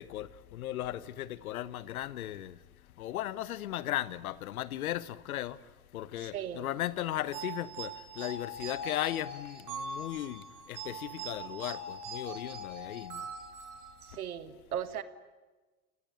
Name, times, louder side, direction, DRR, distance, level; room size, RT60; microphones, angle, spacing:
voice 1, 0.0-2.5 3.0-5.6 5.9-7.9 8.2-10.4 10.7-13.2, left 13 dB, 75° left, 1.2 m, -36 dB
voice 2, 6.2-6.7 14.0-15.0, right 10 dB, 80° right, 1.8 m, -37 dB
sound 1, 7.3-14.2, right 2 dB, 45° right, 6.5 m, -42 dB
30.0 x 18.5 x 9.8 m
hypercardioid pair, 80°, 43 cm